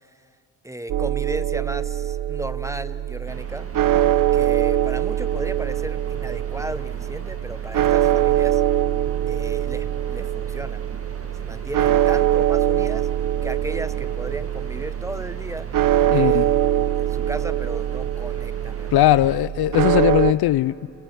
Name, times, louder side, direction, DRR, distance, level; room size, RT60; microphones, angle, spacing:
voice 1, 0.6-3.7 4.3-8.6 9.3-10.8 11.3-13.1 13.4-15.7 16.1-19.0, right 1 dB, 10° right, 0.9 m, -35 dB
sound 1, 0.9-20.3, right 12 dB, 55° right, 0.8 m, -23 dB
sound 2, 3.3-19.4, right 3 dB, 35° right, 2.0 m, -41 dB
voice 2, 16.1-16.5 18.9-20.9, left 14 dB, 70° left, 0.5 m, -19 dB
30.0 x 21.0 x 9.2 m
supercardioid pair, 55°, 39 cm